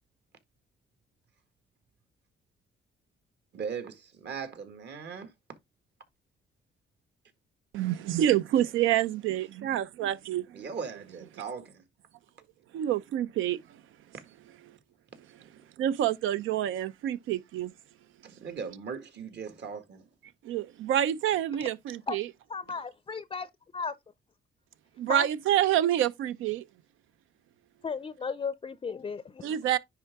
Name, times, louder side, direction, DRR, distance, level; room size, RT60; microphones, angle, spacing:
voice 1, 3.5-5.3 10.5-11.8 15.4-15.5 18.2-20.1, right 6 dB, 60° right, 1.8 m, -39 dB
voice 2, 7.7-10.4 12.7-13.6 15.8-17.7 20.4-22.2 25.0-26.6 29.4-29.8, right 11 dB, 80° right, 0.6 m, -27 dB
voice 3, 22.5-23.9 25.0-25.3 27.8-29.5, left 5 dB, 25° left, 0.5 m, -35 dB
10.0 x 3.7 x 3.5 m
cardioid pair, 90°, 20 cm